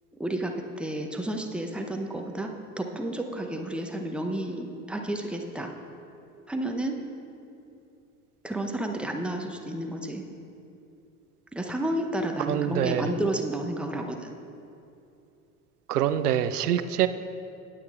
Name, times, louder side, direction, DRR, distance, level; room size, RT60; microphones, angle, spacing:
voice 1, 0.1-5.7 6.5-7.0 8.4-10.2 11.5-14.4, right 1 dB, ahead, 3 dB, 0.8 m, -31 dB
voice 2, 12.5-13.1 15.9-17.1, right 10 dB, 80° right, 12 dB, 0.6 m, -25 dB
18.5 x 8.6 x 2.5 m, 2.7 s
figure-of-eight pair, 75°, 46 cm